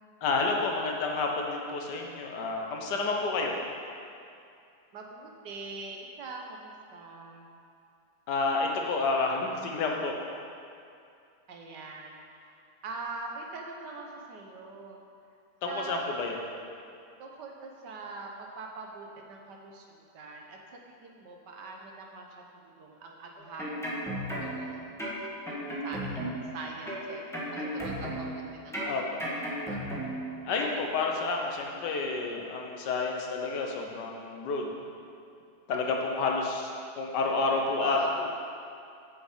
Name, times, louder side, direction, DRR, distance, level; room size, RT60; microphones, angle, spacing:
voice 1, 0.2-3.5 8.3-10.1 15.6-16.4 28.8-29.0 30.4-34.7 35.7-36.7 37.0-38.0, left 3 dB, 80° left, 1 dB, 1.6 m, -29 dB
voice 2, 4.9-7.5 11.5-12.6 12.8-15.0 15.7-16.0 17.2-23.8 24.4-24.8 25.2-25.6 25.8-26.3 26.5-29.0 29.4-30.0 37.8-38.3, right 3 dB, 80° right, 1 dB, 1.6 m, -43 dB
sound 1, 23.4-24.7 25.0-26.5 26.9-28.4 28.7-30.3 30.6-30.8, equal, ahead, 1.6 m, -35 dB
7.9 x 7.6 x 5.0 m, 2.5 s
omnidirectional pair, 1.8 m